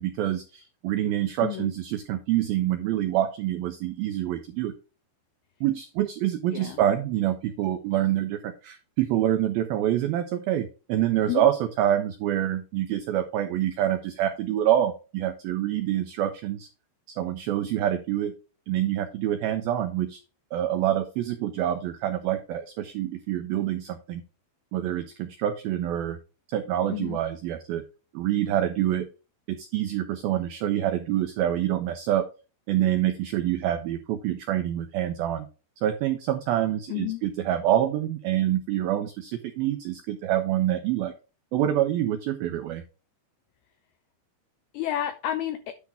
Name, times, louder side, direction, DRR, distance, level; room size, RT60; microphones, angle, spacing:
voice 1, 0.0-4.7 5.6-16.7 17.2-18.3 18.7-20.2 20.5-24.2 24.7-26.2 26.5-27.8 28.1-29.1 29.5-32.2 32.7-35.5 35.8-41.1 41.5-42.8, right 12 dB, 85° right, 7 dB, 2.1 m, -26 dB
voice 2, 1.4-1.7 6.5-6.8 11.3-11.5 26.9-27.2 36.9-37.2 44.7-45.7, left 12 dB, 85° left, 10 dB, 2.2 m, -30 dB
10.0 x 3.5 x 5.6 m, 0.33 s
omnidirectional pair, 5.3 m